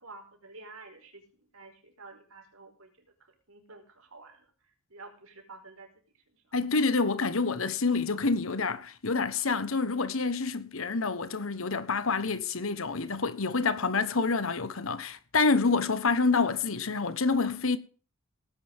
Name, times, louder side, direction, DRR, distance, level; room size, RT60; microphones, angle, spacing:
voice 1, 0.0-6.6, right 3 dB, 90° right, 5.0 m, -51 dB
voice 2, 6.5-17.8, left 4 dB, 70° left, 1.2 m, -27 dB
18.5 x 10.5 x 3.6 m
head